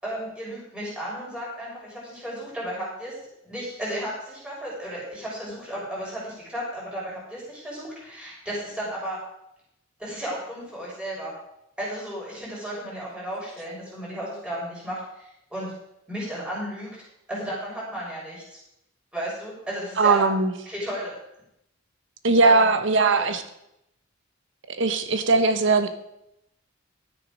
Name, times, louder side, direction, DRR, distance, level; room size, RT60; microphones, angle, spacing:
voice 1, 0.0-3.1 3.4-9.2 10.0-11.3 11.8-15.7 16.1-16.9 17.3-18.6 19.1-20.3 20.7-21.1 22.4-22.7 23.0-23.3, right 1 dB, 5° right, -7 dB, 6.0 m, -34 dB
voice 2, 20.0-20.5 22.2-23.4 24.7-25.9, right 3 dB, 65° right, 9 dB, 1.0 m, -19 dB
12.5 x 9.7 x 5.1 m, 0.81 s
head